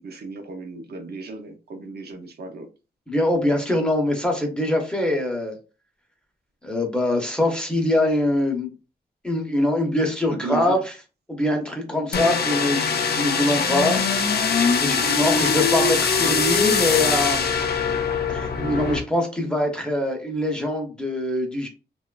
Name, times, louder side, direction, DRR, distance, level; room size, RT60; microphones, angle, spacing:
voice 1, 0.0-2.7 10.3-10.8 14.9-15.3, right 4 dB, 70° right, 4 dB, 0.5 m, -35 dB
voice 2, 3.1-5.5 6.6-8.7 9.2-10.8 11.3-14.0 14.8-17.4 18.3-21.7, left 1 dB, 5° left, 1 dB, 0.6 m, -23 dB
sound 1, 12.1-19.0, left 5 dB, 65° left, 0.4 m, -22 dB
2.9 x 2.2 x 2.3 m, 0.32 s
wide cardioid pair, 130°, 17 cm